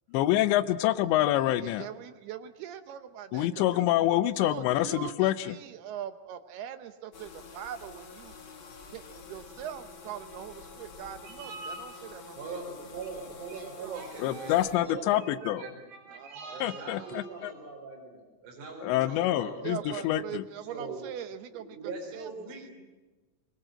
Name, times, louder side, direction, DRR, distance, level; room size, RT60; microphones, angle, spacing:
voice 1, 0.1-1.9 3.3-5.6 14.2-15.6 16.6-17.5 18.8-20.4, left 14 dB, 80° left, 13 dB, 3.0 m, -26 dB
voice 2, 1.6-3.9 4.4-8.3 8.9-12.6 13.6-14.0 16.1-16.6 19.6-21.9 22.2-22.7, right 9 dB, 75° right, 9 dB, 2.6 m, -42 dB
sound 1, 7.1-14.8, left 5 dB, 55° left, 1.4 m, -48 dB
voice 3, 11.2-11.8 12.4-20.1 20.7-21.0 21.5-22.7, right 4 dB, 45° right, -1 dB, 5.4 m, -41 dB
22.5 x 22.0 x 7.8 m, 1.2 s
omnidirectional pair, 5.3 m